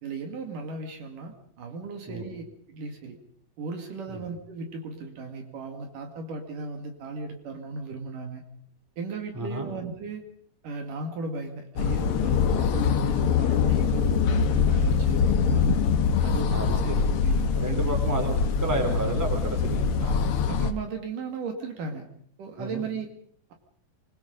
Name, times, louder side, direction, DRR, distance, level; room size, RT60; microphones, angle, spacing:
voice 1, 0.0-3.2 3.6-8.5 9.0-10.2 10.6-15.9 16.2-17.9 20.0-22.1 22.4-23.1, right 3 dB, 65° right, 4 dB, 3.7 m, -36 dB
voice 2, 9.3-9.7 16.5-17.0 17.5-20.1 22.6-22.9, right 2 dB, 5° right, 3 dB, 3.4 m, -31 dB
sound 1, 11.8-20.7, left 6 dB, 90° left, 1.2 m, -24 dB
25.5 x 21.5 x 5.2 m, 0.63 s
omnidirectional pair, 4.1 m